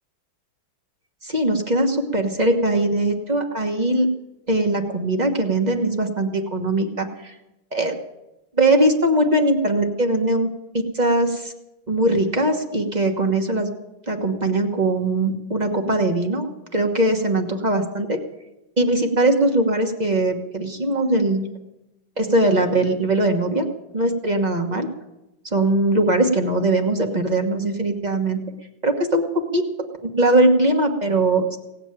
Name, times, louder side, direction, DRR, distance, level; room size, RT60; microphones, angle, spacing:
voice 1, 1.2-4.1 4.5-7.3 7.7-8.0 8.6-11.5 11.9-13.7 14.1-18.2 18.8-21.5 22.2-23.7 23.9-24.9 25.5-28.4 28.8-29.6 30.2-31.6, right 1 dB, 25° right, 4 dB, 1.1 m, -21 dB
17.5 x 8.1 x 8.8 m, 0.93 s
omnidirectional pair, 2.2 m